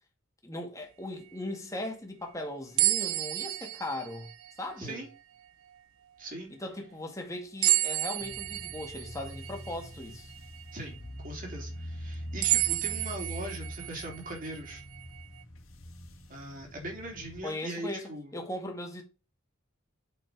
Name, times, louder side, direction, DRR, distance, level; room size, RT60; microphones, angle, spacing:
voice 1, 0.4-4.3 4.6-5.0 6.6-10.3 17.4-19.0, left 1 dB, 15° left, 1.8 m, -38 dB
sound 1, 2.8-5.2 5.7-5.8 7.6-11.0 11.5-11.6 12.4-15.4, right 18 dB, 90° right, 0.4 m, -31 dB
voice 2, 4.8-5.1 6.2-6.5 10.7-11.0 11.2-14.8 16.3-18.3, right 1 dB, 45° right, 3.3 m, -40 dB
sound 2, 8.2-17.4, equal, 85° left, 1.9 m, -44 dB
8.4 x 5.9 x 4.7 m
head